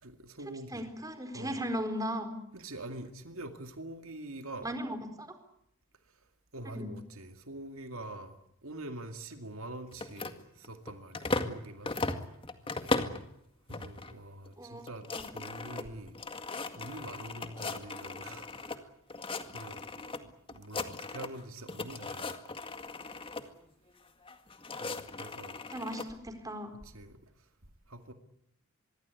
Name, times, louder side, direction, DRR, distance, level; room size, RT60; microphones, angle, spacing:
voice 1, 0.0-0.9 1.3-1.6 2.5-4.8 6.5-11.9 13.7-15.1 15.3-16.3 16.7-18.9 19.5-22.4 24.8-25.6 26.8-27.2 27.9-28.1, right 1 dB, 70° right, 2.3 m, -45 dB
voice 2, 0.7-2.4 4.6-5.3 6.7-6.9 14.6-15.2 25.7-26.8, equal, 15° right, 4.3 m, -37 dB
sound 1, 9.9-11.6 11.8-13.2 13.7-14.1 14.5-14.6 14.8-18.8 19.1-20.2 20.5-21.4 21.7-23.4 24.2-26.1, left 3 dB, 25° left, 2.0 m, -37 dB
25.5 x 22.5 x 8.4 m
head